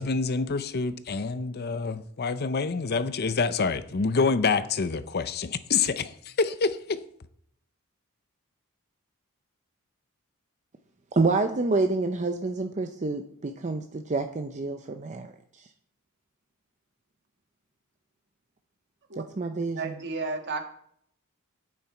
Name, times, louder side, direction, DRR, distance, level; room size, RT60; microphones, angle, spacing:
voice 1, 0.0-7.0, left 4 dB, 45° left, 0.6 m, -27 dB
voice 2, 11.1-15.3 19.2-20.0, right 3 dB, 35° right, 0.6 m, -28 dB
voice 3, 19.7-20.7, right 3 dB, 50° right, 1.6 m, -32 dB
10.5 x 8.9 x 4.4 m
head